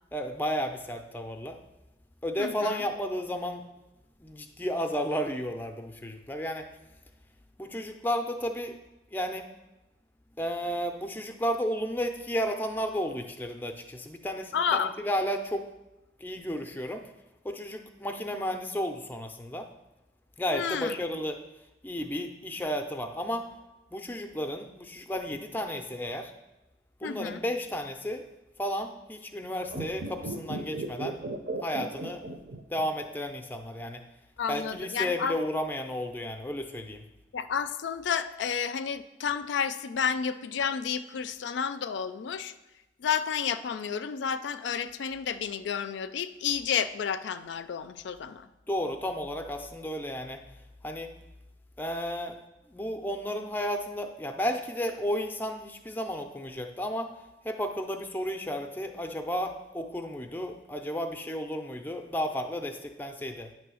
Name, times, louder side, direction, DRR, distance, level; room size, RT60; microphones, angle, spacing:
voice 1, 0.1-1.6 2.2-3.6 4.2-6.7 7.6-8.7 9.1-9.5 10.4-15.7 16.2-17.0 17.4-19.7 20.4-21.4 21.8-23.5 23.9-26.3 27.0-28.2 28.6-31.2 31.6-32.2 32.7-34.0 34.5-37.0 48.7-50.4 50.8-51.1 51.8-52.3 52.7-57.1 57.4-63.5, equal, 10° left, 6 dB, 0.4 m, -33 dB
voice 2, 2.4-2.8 14.5-14.9 20.5-21.0 27.0-27.4 34.4-35.4 37.3-42.5 43.0-48.5, left 7 dB, 75° left, 11 dB, 0.4 m, -31 dB
sound 1, 29.6-33.1 33.3-33.4, right 2 dB, 50° right, 0.7 m, -36 dB
9.3 x 3.2 x 6.2 m, 1.0 s
head